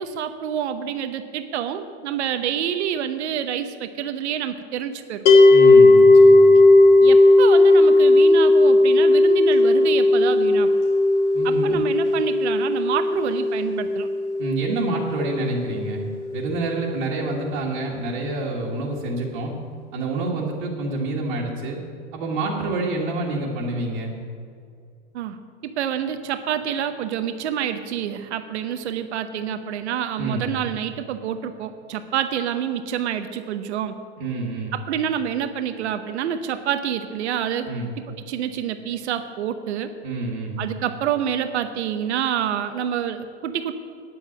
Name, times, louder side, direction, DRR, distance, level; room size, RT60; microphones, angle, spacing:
voice 1, 0.0-5.2 7.0-10.7 11.4-14.1 25.1-25.4 25.6-34.0 34.7-37.7 38.1-39.9 40.6-43.7, right 9 dB, 75° right, 9 dB, 0.9 m, -27 dB
sound 1, 5.3-16.4, left 2 dB, 85° left, 2.7 m, -15 dB
voice 2, 5.5-6.5 11.3-11.8 14.4-16.0 16.3-19.5 19.9-21.8 22.1-24.1 30.2-30.6 34.2-34.8 37.7-37.9 40.0-40.7, right 2 dB, 45° right, -4 dB, 1.7 m, -27 dB
9.6 x 7.9 x 8.6 m, 2.4 s
supercardioid pair, 160°, 34 cm